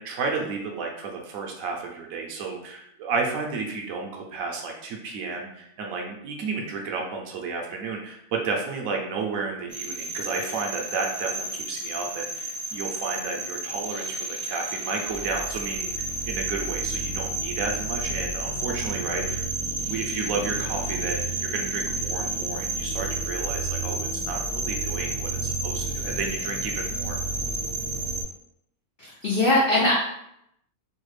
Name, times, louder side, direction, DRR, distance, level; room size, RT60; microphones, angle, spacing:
voice 1, 0.0-19.4 19.8-27.2, right 4 dB, 70° right, 0 dB, 0.9 m, -32 dB
sound 1, 9.7-28.2, right 2 dB, 5° right, 0.5 m, -31 dB
voice 2, 29.0-29.9, left 2 dB, 80° left, -3 dB, 0.5 m, -21 dB
3.2 x 2.3 x 3.1 m, 0.77 s
omnidirectional pair, 1.6 m